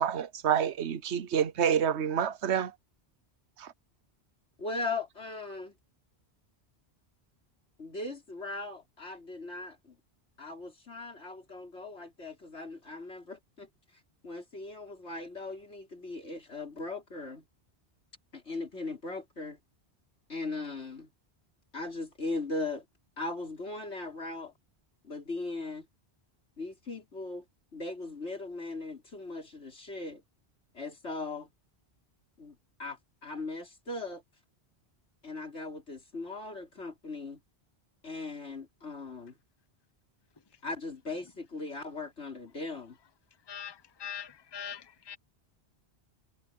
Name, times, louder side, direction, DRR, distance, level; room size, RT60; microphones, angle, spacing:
voice 1, 0.0-2.7 3.6-3.7, right 8 dB, 85° right, 1.1 m, -28 dB
voice 2, 4.6-5.7 7.8-10.0 10.4-13.7 14.2-17.4 18.3-19.6 20.3-21.1 21.7-22.8 23.2-24.5 25.0-25.9 26.6-27.4 27.7-30.2 30.7-31.5 32.4-34.2 35.2-37.4 38.0-39.4 40.6-43.0, left 3 dB, 85° left, 4.8 m, -39 dB
voice 3, 44.0-44.8 45.1-45.2, left 8 dB, 25° left, 0.9 m, -40 dB
omnidirectional pair, 1.1 m